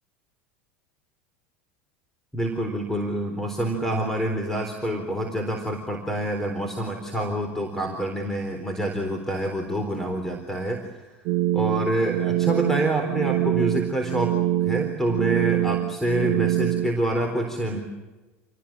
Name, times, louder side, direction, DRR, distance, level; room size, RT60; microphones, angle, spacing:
voice 1, 2.3-11.1 11.5-17.8, right 1 dB, 5° left, 5 dB, 4.1 m, -27 dB
sound 1, 11.3-16.9, right 14 dB, 60° right, 0.8 m, -24 dB
28.5 x 19.0 x 9.1 m, 1.2 s
supercardioid pair, 110°, 6 cm